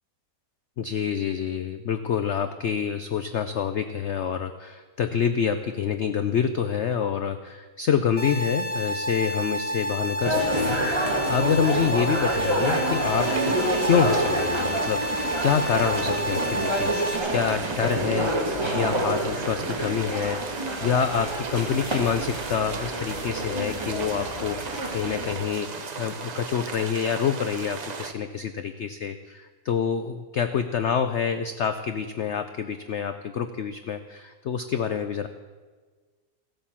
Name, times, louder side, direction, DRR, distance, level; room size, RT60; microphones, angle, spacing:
voice 1, 0.8-13.5 13.8-18.4 18.7-35.3, left 7 dB, 75° left, 9 dB, 0.6 m, -27 dB
sound 1, 8.2-17.2, equal, 35° left, 1.3 m, -30 dB
sound 2, 10.2-25.4, right 1 dB, 15° right, 1.8 m, -28 dB
sound 3, 13.2-28.1, right 5 dB, 55° right, 0.4 m, -35 dB
15.0 x 8.8 x 7.3 m, 1.4 s
omnidirectional pair, 1.9 m